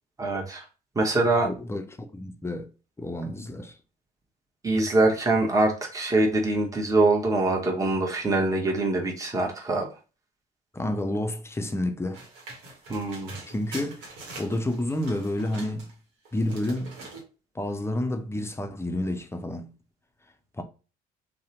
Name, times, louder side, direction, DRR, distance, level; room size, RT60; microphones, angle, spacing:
voice 1, 0.2-0.6 0.9-1.5 4.6-9.9 12.9-13.3, right 2 dB, 15° right, 0.9 m, -24 dB
voice 2, 1.4-2.7 3.0-3.7 10.7-12.2 13.5-14.1 14.3-15.9 16.3-16.9 17.6-19.7 20.6-20.7, left 1 dB, 15° left, 0.5 m, -30 dB
sound 1, 12.1-15.9 16.3-17.2, right 2 dB, 75° right, 1.0 m, -43 dB
2.7 x 2.1 x 2.8 m
hypercardioid pair, 55°, 20 cm